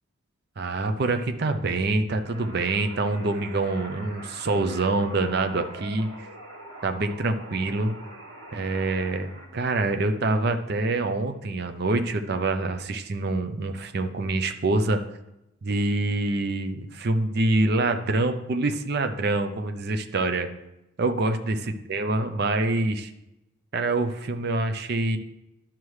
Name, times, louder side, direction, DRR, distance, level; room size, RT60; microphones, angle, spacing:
voice 1, 0.6-6.3 6.8-7.9 8.5-15.0 15.6-20.5 21.0-23.1 23.7-25.2, right 2 dB, 50° right, 7 dB, 0.5 m, -26 dB
sound 1, 2.3-9.5, right 1 dB, 80° right, 2.1 m, -43 dB
11.0 x 5.8 x 3.2 m, 0.90 s
head